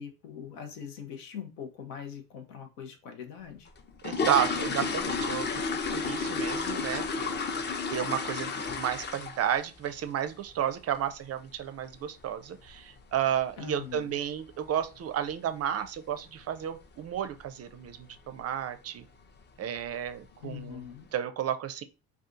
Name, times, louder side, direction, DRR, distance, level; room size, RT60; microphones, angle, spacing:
voice 1, 0.0-3.7 13.6-14.2 20.4-21.1, left 8 dB, 85° left, 0.7 m, -42 dB
sound 1, 3.7-9.6 9.9-10.1 10.5-10.6 10.9-11.1 11.5-11.7 12.0-12.1 12.6-12.7 13.0-13.2 13.7-14.0 14.3-14.4 14.8-15.0 15.3-15.4 15.8-15.9 16.5-16.8 17.2-17.5 17.8-17.9 18.4-18.5 19.2-19.4 19.8-20.3 20.7-20.8, left 4 dB, 25° left, 0.5 m, -32 dB
voice 2, 4.0-7.4 7.9-19.0 19.6-20.8 21.1-21.8, right 9 dB, 40° right, 0.4 m, -32 dB
2.5 x 2.4 x 3.6 m
hypercardioid pair, 65°, 41 cm